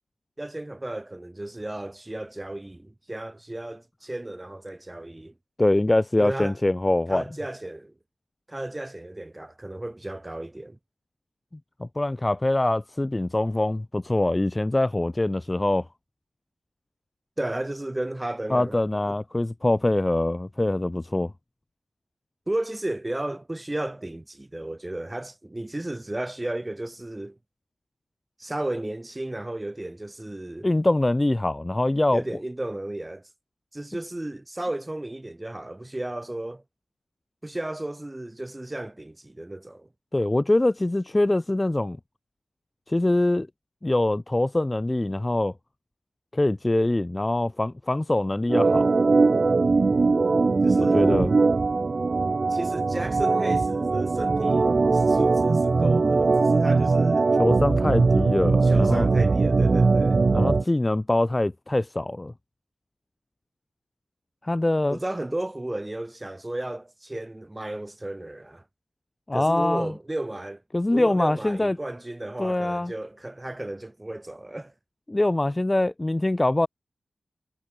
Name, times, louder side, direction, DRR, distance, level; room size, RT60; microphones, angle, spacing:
voice 1, 0.4-5.3 6.2-6.6 7.1-7.9 8.5-10.8 17.4-18.8 19.1-19.2 22.5-27.4 28.4-30.7 32.1-33.3 33.7-36.6 37.4-39.9 50.6-51.1 52.5-57.4 58.6-60.2 64.9-68.6 69.3-70.6 70.9-74.7, right 1 dB, 15° right, 6.2 m, -34 dB
voice 2, 5.6-7.2 11.8-15.9 18.5-21.3 30.6-32.2 40.1-42.0 42.9-43.5 43.8-45.5 46.3-48.9 50.8-51.3 57.4-59.1 60.3-62.3 64.4-65.0 69.3-69.9 70.7-71.8 72.4-72.9 75.1-76.7, left 1 dB, 20° left, 0.5 m, -24 dB
Organ, 48.5-60.6, right 3 dB, 45° right, 0.8 m, -21 dB
wide cardioid pair, 110°, 0 cm